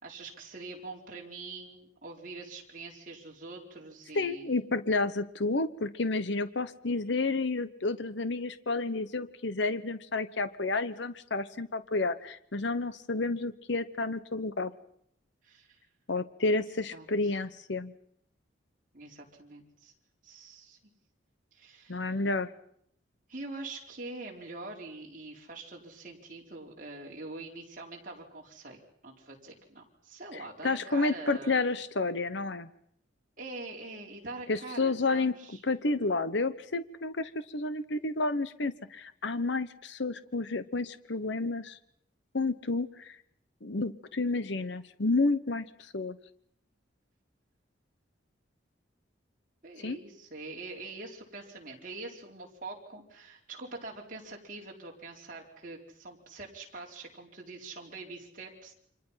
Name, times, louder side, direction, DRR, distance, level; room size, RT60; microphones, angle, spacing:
voice 1, 0.0-4.6 15.4-15.8 16.9-17.3 18.9-19.9 20.2-20.8 21.5-22.1 23.3-31.7 33.4-35.6 49.6-58.7, right 3 dB, 45° right, -1 dB, 4.5 m, -44 dB
voice 2, 4.1-14.7 16.1-17.9 21.9-22.5 30.6-32.7 34.5-41.8 42.3-43.2 43.6-46.2 49.8-50.0, left 3 dB, 65° left, 13 dB, 1.0 m, -30 dB
29.5 x 25.5 x 5.8 m, 0.69 s
head